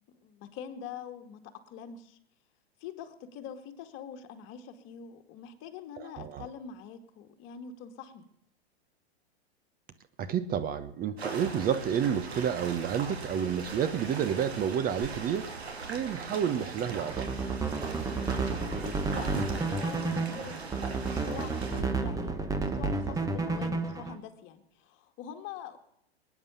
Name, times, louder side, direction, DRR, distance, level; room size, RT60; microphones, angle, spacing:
voice 1, 0.1-1.4 1.7-2.2 2.8-8.3 18.8-25.8, left 8 dB, 40° left, 7 dB, 2.1 m, -44 dB
voice 2, 6.0-6.5 10.2-15.5 15.9-17.3, right 8 dB, 30° right, 12 dB, 1.0 m, -30 dB
sound 1, 11.2-21.8, right 4 dB, 80° right, 3.5 m, -40 dB
sound 2, 16.9-17.8 18.1-18.2 19.2-19.9 20.4-20.5 21.8-22.3 22.6-23.3, right 4 dB, 55° right, 3.4 m, -46 dB
sound 3, 17.1-24.2, right 3 dB, 10° right, 1.4 m, -31 dB
21.0 x 9.6 x 7.0 m, 0.76 s
hypercardioid pair, 110°, 32 cm